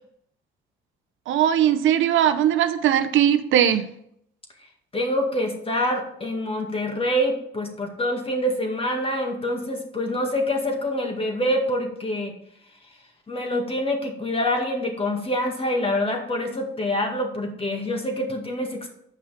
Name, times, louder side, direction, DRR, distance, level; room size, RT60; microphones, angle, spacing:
voice 1, 1.3-3.9, right 10 dB, 80° right, 9 dB, 0.7 m, -19 dB
voice 2, 4.9-12.4 13.3-18.9, left 1 dB, 30° left, 3 dB, 2.1 m, -26 dB
8.2 x 5.6 x 5.0 m, 0.72 s
cardioid pair, 90°, 20 cm